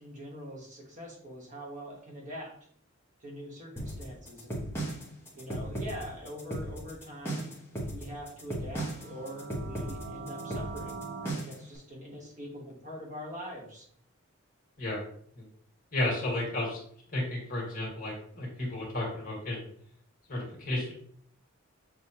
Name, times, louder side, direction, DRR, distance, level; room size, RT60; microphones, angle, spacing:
voice 1, 0.0-2.5 3.2-4.6 5.3-13.9, equal, 35° right, -2 dB, 1.1 m, -43 dB
sound 1, 3.8-11.7, right 1 dB, 10° left, 0.9 m, -36 dB
sound 2, 8.7-11.3, right 4 dB, 65° right, 0.5 m, -42 dB
voice 2, 15.9-16.8 17.1-19.7 20.3-20.9, left 1 dB, 40° left, -3 dB, 1.7 m, -33 dB
6.5 x 2.3 x 2.8 m, 0.63 s
head